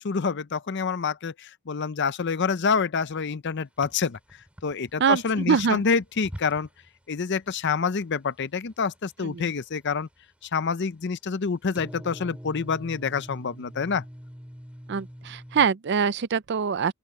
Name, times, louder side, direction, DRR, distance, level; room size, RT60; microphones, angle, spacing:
voice 1, 0.0-4.2 4.6-6.7 7.1-10.1 10.4-14.0, left 5 dB, 55° left, 0.6 m, -27 dB
sound 1, 3.8-6.9 7.1-7.6 7.9-8.0 8.4-9.1 9.4-10.2 11.7-15.7, equal, 5° right, 3.0 m, -44 dB
voice 2, 5.0-5.8 9.2-9.5 14.9-16.9, right 6 dB, 55° right, 0.5 m, -24 dB
open air
head